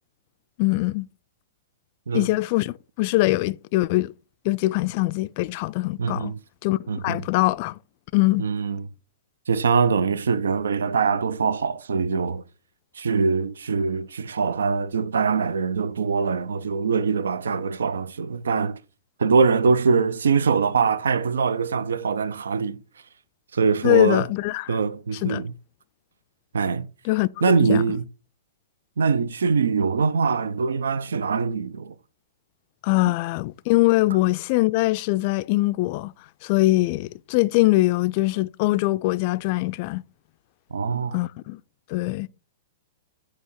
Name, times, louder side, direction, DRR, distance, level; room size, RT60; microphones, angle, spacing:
voice 1, 0.6-1.1 2.1-4.1 4.4-6.3 6.6-7.7 8.1-8.5 23.8-24.8 25.2-25.4 27.0-27.8 32.8-36.1 36.4-40.1 41.1-41.6 41.9-42.3, left 19 dB, 45° left, 0.3 m, -22 dB
voice 2, 6.0-6.4 6.9-7.2 8.4-8.9 9.5-12.4 13.0-18.8 19.2-22.8 23.5-24.3 24.7-25.5 26.5-26.9 27.4-28.1 29.0-31.9 40.7-41.2, right 5 dB, 80° right, 0.4 m, -23 dB
8.1 x 2.8 x 4.5 m
hypercardioid pair, 120°, 0 cm